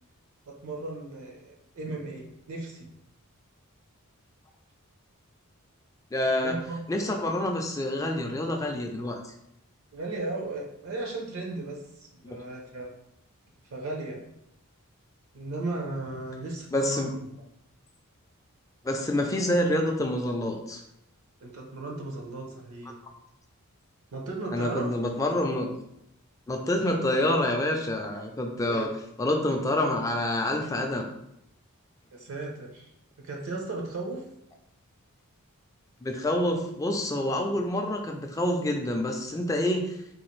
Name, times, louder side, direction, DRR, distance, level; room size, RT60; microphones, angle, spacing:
voice 1, 0.5-2.9 6.2-7.1 9.9-12.9 13.6-14.2 15.3-17.1 21.4-23.0 24.1-24.9 28.7-28.9 32.1-32.9 33.2-34.2, right 2 dB, 70° right, 0 dB, 0.7 m, -36 dB
voice 2, 6.1-6.6 6.9-9.3 12.2-12.4 16.7-17.1 18.8-20.8 24.5-25.7 26.5-28.9 29.2-31.1 36.0-40.0, left 1 dB, 15° left, 3 dB, 0.3 m, -27 dB
4.0 x 2.5 x 3.1 m, 0.80 s
head